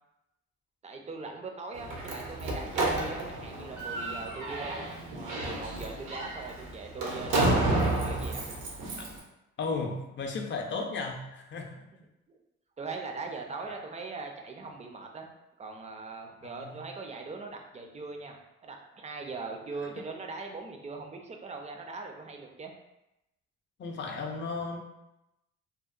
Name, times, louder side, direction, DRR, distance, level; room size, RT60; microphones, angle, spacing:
voice 1, 0.8-8.4 12.3-12.4 12.8-15.3 15.6-18.4 18.6-22.7, right 4 dB, 25° right, 3 dB, 0.4 m, -41 dB
Slam, 1.7-9.2, right 2 dB, 80° right, 0.6 m, -31 dB
voice 2, 9.6-11.9 13.7-13.8 16.4-16.8 23.8-24.8, left 4 dB, 40° left, 2 dB, 0.5 m, -35 dB
2.8 x 2.0 x 2.4 m, 0.91 s
cardioid pair, 90°, 30 cm